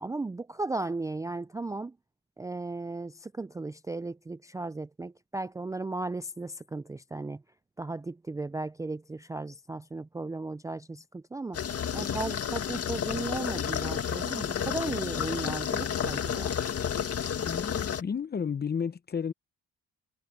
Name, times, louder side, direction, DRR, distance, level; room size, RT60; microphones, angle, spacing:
voice 1, 0.0-2.0 2.4-7.4 7.8-11.6 11.9-16.6, right 3 dB, 10° right, 0.4 m, -36 dB
sound 1, 11.5-18.0, left 8 dB, 50° left, 1.9 m, -31 dB
voice 2, 17.4-19.3, left 6 dB, 35° left, 0.9 m, -32 dB
cardioid pair, 90°, 30 cm